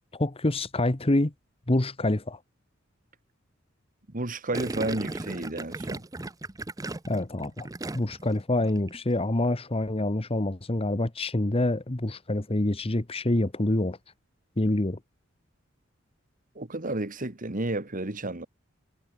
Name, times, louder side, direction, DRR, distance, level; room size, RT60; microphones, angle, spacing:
voice 1, 0.1-1.3 1.7-2.4 7.1-7.7 7.9-14.0 14.6-15.0, left 1 dB, 30° left, 1.2 m, -26 dB
voice 2, 4.1-6.0 16.6-18.5, right 2 dB, 40° right, 1.9 m, -32 dB
Gurgling, 4.5-8.3 8.6-9.0, right 2 dB, 20° right, 0.7 m, -36 dB
head